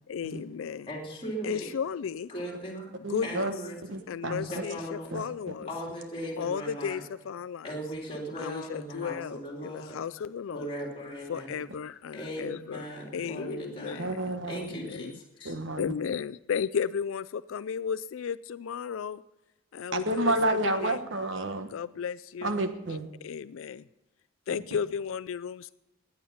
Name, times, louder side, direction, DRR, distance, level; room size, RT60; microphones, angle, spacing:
voice 1, 0.1-0.9 1.4-2.3 3.1-3.5 4.1-5.7 6.4-7.8 8.4-10.7 11.3-12.9 13.1-14.2 14.7-15.1 15.8-19.2 19.7-21.0 21.7-22.6 23.2-23.8 24.5-25.7, left 7 dB, 75° left, 14 dB, 0.4 m, -34 dB
voice 2, 0.9-1.7 2.3-2.9 3.2-4.0 4.4-5.2 5.6-7.0 7.6-10.0 10.5-11.6 12.1-14.1 14.4-15.6, equal, 25° left, -1 dB, 3.1 m, -38 dB
voice 3, 3.0-3.5 3.9-4.5 5.1-5.5 14.0-14.7 15.4-15.8 19.9-21.7 22.4-23.1 24.5-24.6, right 2 dB, 65° right, 8 dB, 1.2 m, -30 dB
17.5 x 9.5 x 5.6 m, 0.94 s
head